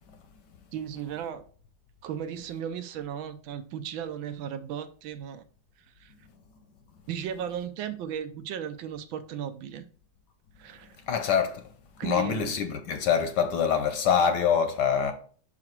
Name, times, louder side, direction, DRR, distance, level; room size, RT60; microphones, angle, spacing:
voice 1, 0.7-1.4 2.0-5.4 6.0-6.1 7.1-9.8 10.6-11.0 12.0-12.5, right 9 dB, 80° right, 1.4 m, -35 dB
voice 2, 11.1-11.6 12.0-15.1, left 7 dB, 70° left, 1.2 m, -25 dB
5.9 x 4.9 x 4.5 m
omnidirectional pair, 2.3 m